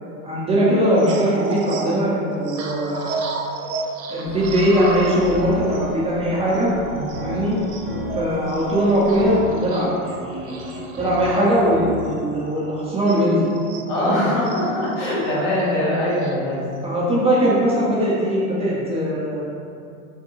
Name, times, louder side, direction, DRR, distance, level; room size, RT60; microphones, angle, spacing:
voice 1, 0.2-3.1 4.1-6.7 7.2-7.6 8.1-13.5 14.0-14.3 15.3-15.5 16.8-19.4, equal, 15° right, -7 dB, 0.5 m, -20 dB
sound 1, 0.7-13.9 14.4-16.9, right 3 dB, 85° right, 0.5 m, -33 dB
sound 2, 4.3-9.4, equal, 35° left, 0.5 m, -38 dB
sound 3, 4.5-12.2, left 1 dB, 40° right, 0.8 m, -34 dB
voice 2, 13.9-16.9 18.7-18.8, left 1 dB, 65° left, -7 dB, 1.2 m, -23 dB
3.5 x 2.2 x 2.9 m, 2.4 s
hypercardioid pair, 110°, 41 cm